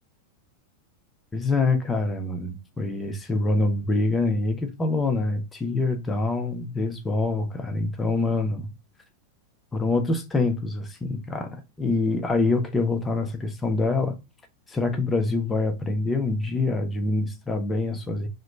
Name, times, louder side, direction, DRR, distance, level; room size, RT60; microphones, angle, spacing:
voice 1, 1.3-8.7 9.7-14.2 14.7-18.3, left 3 dB, 15° left, 0.6 m, -25 dB
3.0 x 2.1 x 3.8 m
figure-of-eight pair, 90°, 0 cm